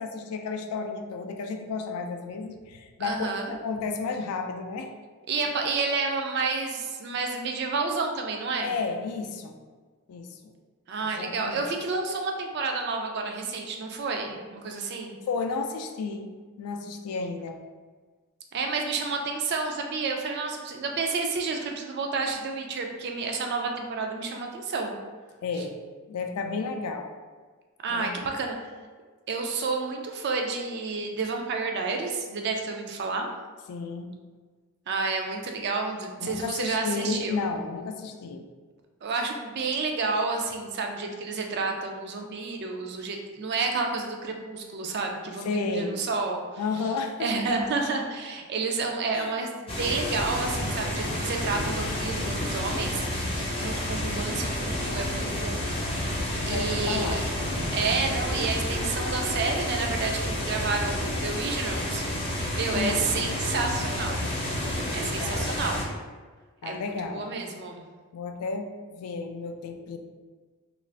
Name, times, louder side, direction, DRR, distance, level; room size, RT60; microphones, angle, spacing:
voice 1, 0.0-4.9 8.6-9.5 10.1-10.4 11.0-11.7 15.3-17.6 25.4-25.8 26.1-27.1 27.9-28.2 33.7-34.1 36.2-38.5 45.4-46.0 46.6-47.5 49.1-49.4 56.4-57.2 62.7-63.1 64.9-65.6 66.6-67.4 68.1-70.0, left 4 dB, 80° left, 5 dB, 0.3 m, -32 dB
voice 2, 3.0-3.5 5.3-8.7 10.9-15.2 18.5-24.9 27.8-28.6 29.3-33.3 34.9-37.5 39.0-46.4 47.2-57.3 57.7-62.0 62.6-64.2 64.9-65.8 66.6-67.8, right 4 dB, 50° right, 3 dB, 0.3 m, -30 dB
sound 1, 49.7-65.8, left 1 dB, 25° left, 0.5 m, -30 dB
2.5 x 2.4 x 3.2 m, 1.4 s
head